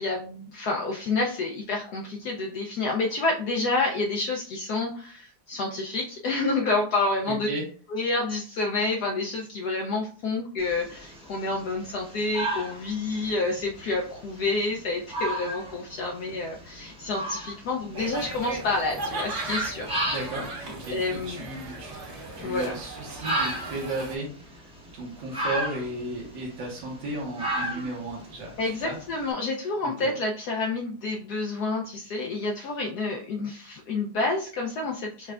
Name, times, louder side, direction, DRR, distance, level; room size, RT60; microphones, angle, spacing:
voice 1, 0.0-7.5 7.9-19.9 20.9-21.5 22.4-22.7 28.6-35.3, left 3 dB, 70° left, 0 dB, 1.0 m, -29 dB
sound 1, 10.6-29.3, right 1 dB, 5° right, 0.6 m, -36 dB
sound 2, 17.9-24.1, right 2 dB, 45° right, 1.4 m, -36 dB
voice 2, 20.1-21.9 22.4-28.5 28.8-29.0 30.0-30.1, right 2 dB, 75° right, -3 dB, 1.7 m, -34 dB
5.8 x 3.2 x 2.3 m, 0.44 s
omnidirectional pair, 2.0 m